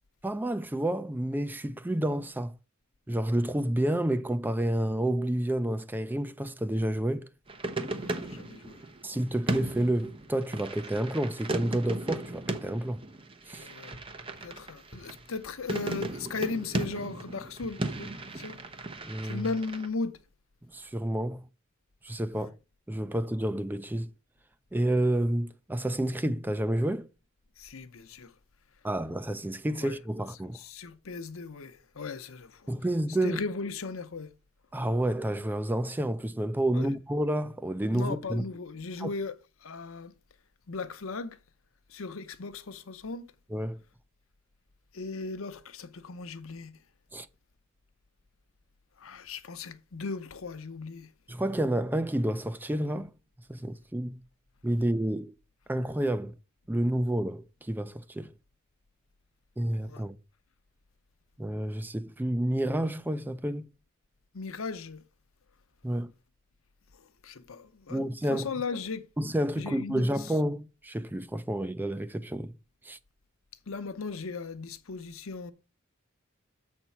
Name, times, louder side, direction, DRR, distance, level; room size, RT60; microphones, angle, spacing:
voice 1, 0.2-2.5 3.1-7.3 9.0-13.0 13.5-13.7 19.0-19.5 20.7-21.4 22.0-22.5 22.9-24.1 24.7-27.1 28.8-30.6 32.7-33.4 34.7-38.4 39.0-39.1 43.5-43.8 47.1-47.3 51.3-53.1 53.5-54.2 54.6-55.3 55.7-56.3 56.7-58.3 59.6-60.2 61.4-63.7 65.8-66.1 67.9-68.5 69.2-72.5 72.8-73.0, right 1 dB, 10° right, 0.4 m, -29 dB
sound 1, 7.5-19.9, right 2 dB, 25° right, 0.9 m, -36 dB
voice 2, 7.8-8.8 13.6-14.0 14.4-18.6 19.2-20.2 22.3-22.5 27.6-28.3 29.8-30.0 30.5-32.7 33.2-34.3 36.7-36.9 37.9-40.1 40.7-41.4 41.9-43.3 44.9-46.7 49.0-51.1 59.8-60.0 64.3-65.0 66.9-68.0 68.3-69.1 69.6-70.3 73.7-75.5, left 4 dB, 75° left, 0.8 m, -37 dB
7.2 x 4.4 x 5.6 m
head